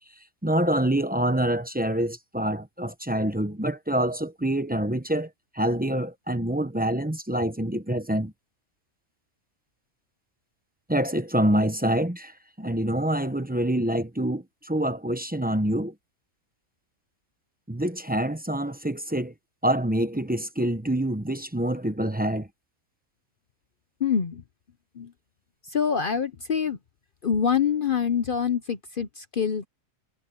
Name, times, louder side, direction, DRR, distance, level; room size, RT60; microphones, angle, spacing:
voice 1, 0.4-5.3 5.5-8.3 10.9-15.9 17.7-19.3 19.6-22.5, right 1 dB, 10° right, 0.7 m, -26 dB
voice 2, 24.0-24.4 24.9-25.1 25.6-26.8 27.2-29.7, left 7 dB, 45° left, 0.9 m, -25 dB
omnidirectional pair, 1.4 m